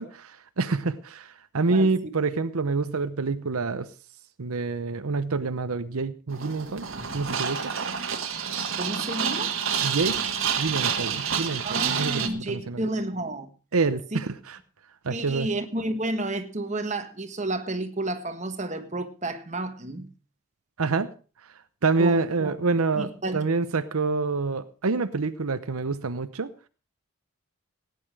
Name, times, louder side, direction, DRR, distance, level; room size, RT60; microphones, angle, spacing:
voice 1, 0.0-3.9 4.4-6.9 7.1-7.7 9.8-10.2 10.6-12.9 13.7-14.6 15.0-15.5 20.8-21.1 21.8-26.5, right 4 dB, 85° right, 0.8 m, -27 dB
sound 1, 6.3-12.3, right 7 dB, 65° right, 1.6 m, -28 dB
voice 2, 8.8-9.5 11.6-13.5 14.1-14.2 15.1-20.1 22.0-22.6 22.9-23.4, right 1 dB, 30° right, 1.3 m, -31 dB
16.5 x 9.7 x 4.8 m
head